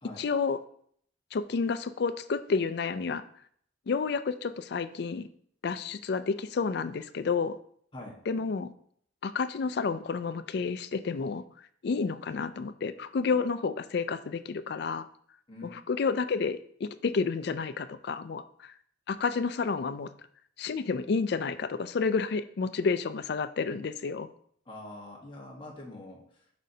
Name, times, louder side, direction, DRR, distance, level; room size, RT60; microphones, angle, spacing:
voice 1, 0.2-0.6 1.3-3.2 3.9-5.3 5.6-7.6 8.3-8.7 9.2-11.4 11.8-15.0 15.6-18.7 19.1-20.1 20.6-24.3, left 5 dB, 60° left, 12 dB, 0.4 m, -30 dB
voice 2, 15.5-15.8 24.6-26.4, left 2 dB, 25° left, -2 dB, 1.3 m, -44 dB
7.4 x 5.2 x 2.8 m, 0.63 s
head